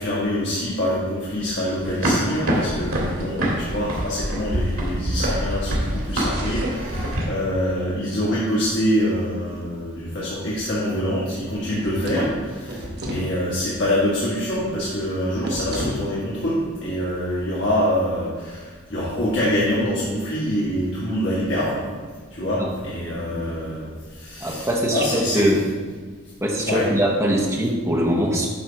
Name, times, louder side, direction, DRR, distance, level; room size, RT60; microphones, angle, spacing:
voice 1, 0.0-21.8 22.3-25.5 26.7-26.9, equal, 60° left, -8 dB, 1.9 m, -25 dB
sound 1, 1.8-7.2, right 1 dB, 85° right, 2.1 m, -25 dB
sound 2, 11.6-13.3 15.4-16.0, equal, 50° right, 1.1 m, -30 dB
voice 2, 23.0-23.5 24.4-25.7 26.4-28.5, equal, 15° right, -1 dB, 1.0 m, -22 dB
9.4 x 3.5 x 5.8 m, 1.5 s
head